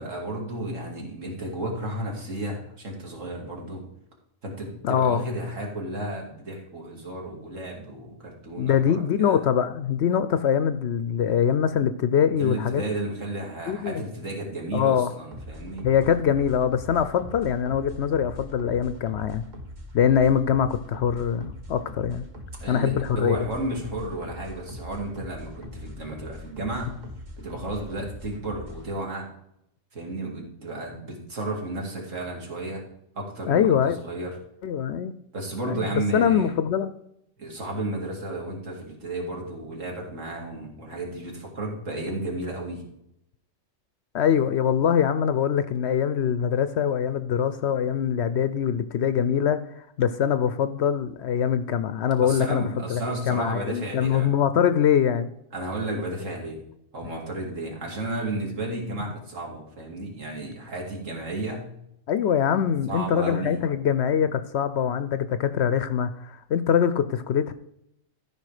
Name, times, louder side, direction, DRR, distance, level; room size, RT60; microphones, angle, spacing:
voice 1, 0.0-3.8 4.4-9.4 12.3-15.8 22.6-27.0 27.4-29.3 29.9-32.8 33.1-34.3 35.3-36.6 37.4-42.8 52.2-54.3 55.5-56.6 56.9-61.7 62.9-63.6, right 2 dB, 70° right, 0 dB, 2.7 m, -33 dB
voice 2, 4.8-5.3 8.6-12.9 13.7-14.0 14.7-15.1 15.8-19.4 19.9-22.3 22.7-23.5 33.5-34.0 34.6-35.1 35.7-37.0 44.1-49.6 50.0-55.3 62.1-67.5, left 8 dB, 65° left, 12 dB, 0.7 m, -23 dB
sound 1, 15.3-28.9, left 1 dB, 35° right, 1.6 m, -41 dB
13.5 x 5.5 x 4.9 m, 0.78 s
omnidirectional pair, 1.4 m